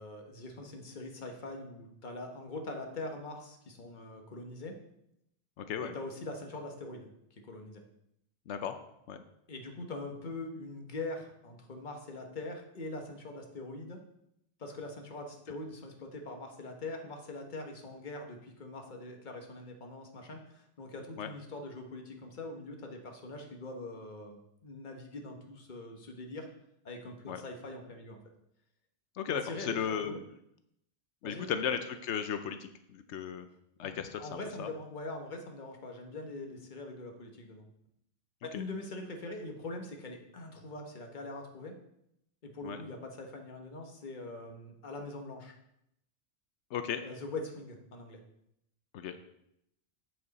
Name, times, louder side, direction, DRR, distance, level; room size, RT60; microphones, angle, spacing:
voice 1, 0.0-4.8 5.8-7.8 9.5-14.0 14.6-26.5 26.8-28.2 29.2-30.2 31.2-31.5 33.8-33.9 34.2-37.7 38.4-41.7 42.4-45.5 47.0-48.2, left 2 dB, 45° left, 3 dB, 1.3 m, -43 dB
voice 2, 5.6-6.0 8.5-8.8 9.1-9.2 21.2-21.3 27.3-27.4 29.2-30.2 31.2-33.4 33.8-34.7 38.5-38.6 42.6-42.8 46.7-47.0 48.9-49.2, left 8 dB, 85° left, 8 dB, 0.9 m, -35 dB
7.8 x 7.6 x 4.1 m, 0.78 s
omnidirectional pair, 1.1 m